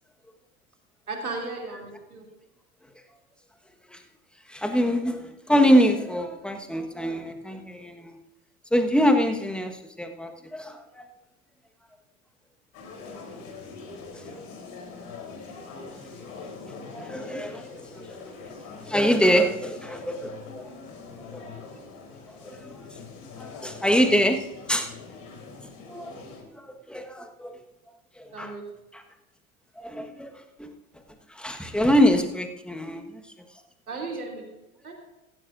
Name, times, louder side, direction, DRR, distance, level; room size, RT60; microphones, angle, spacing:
voice 1, 1.1-2.2 28.3-28.6 33.9-34.4 34.8-34.9, right 3 dB, 85° right, 0 dB, 3.1 m, -35 dB
voice 2, 4.5-8.2 8.7-11.0 14.1-14.2 16.9-18.2 18.8-20.7 21.1-21.5 22.3-22.7 23.4-24.4 24.7-24.9 25.9-26.1 26.5-27.6 28.2-28.5 28.9-29.0 29.8-30.7 31.3-33.2, equal, ahead, 5 dB, 1.5 m, -25 dB
sound 1, 12.7-26.4, left 4 dB, 50° left, 4.0 m, -43 dB
16.5 x 15.0 x 2.6 m, 0.98 s
figure-of-eight pair, 75°, 43 cm